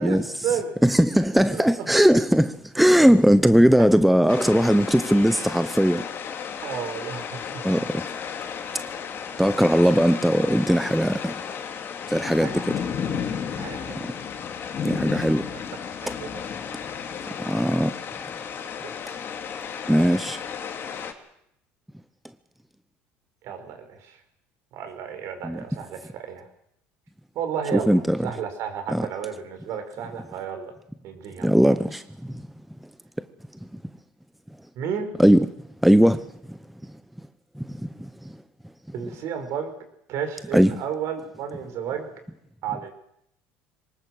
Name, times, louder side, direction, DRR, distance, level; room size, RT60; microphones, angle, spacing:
voice 1, 0.0-0.7 1.5-1.9 3.8-3.9 6.6-7.6 12.4-12.7 13.6-14.0 15.3-15.6 15.9-16.5 18.7-18.9 23.4-24.2 24.7-26.5 27.3-30.7 31.0-31.5 34.7-35.1 38.9-39.7 40.1-42.1 42.6-42.9, right 8 dB, 60° right, 5.2 m, -32 dB
voice 2, 0.8-6.1 7.6-8.0 9.4-11.4 12.1-12.7 14.0-14.1 14.8-15.5 17.4-17.9 19.9-20.4 25.4-25.6 27.7-28.3 28.9-29.1 31.4-32.4 35.2-35.5 35.8-36.6 37.6-38.4 40.5-40.7, equal, ahead, 0.8 m, -19 dB
sound 1, 4.3-21.1, left 7 dB, 40° left, 2.9 m, -33 dB
23.5 x 19.5 x 7.9 m
supercardioid pair, 100°, 5 cm